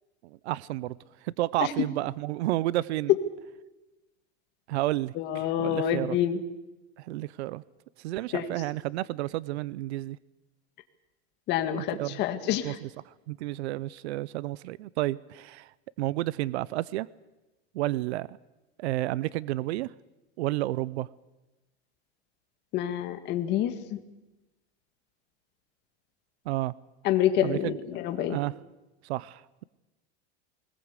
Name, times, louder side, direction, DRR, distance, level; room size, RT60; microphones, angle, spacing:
voice 1, 0.4-0.9 1.2-3.1 4.7-6.2 7.0-7.6 8.0-10.2 11.9-12.9 13.3-15.7 16.0-17.1 17.7-18.3 18.8-19.9 20.4-21.1 26.5-26.7 27.4-27.8 28.1-28.5 29.0-29.6, right 16 dB, 75° right, 0.7 m, -31 dB
voice 2, 5.2-6.4 8.3-8.5 11.5-12.8 22.7-24.0 27.0-28.4, left 10 dB, 30° left, 1.7 m, -27 dB
20.5 x 20.5 x 8.1 m
supercardioid pair, 170°, 34 cm